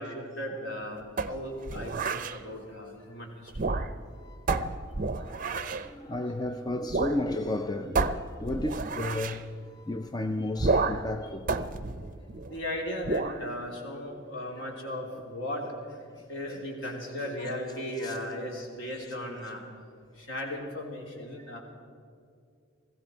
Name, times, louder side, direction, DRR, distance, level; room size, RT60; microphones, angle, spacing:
voice 1, 0.0-3.7 5.6-5.7 12.5-15.9 16.3-19.6 20.2-21.6, left 1 dB, 60° left, 3.4 m, -36 dB
sound 1, 1.2-2.4 3.5-4.1 4.5-5.9 6.9-7.2 7.5-7.6 7.9-9.4 10.6-11.1 11.5-12.6 13.0-13.4, right 3 dB, 40° right, 0.6 m, -30 dB
voice 2, 4.1-4.8 5.2-11.5 14.6-14.7 18.0-18.2 18.9-19.1 21.4-21.5, left 2 dB, 20° left, 0.5 m, -34 dB
20.0 x 16.0 x 4.5 m
head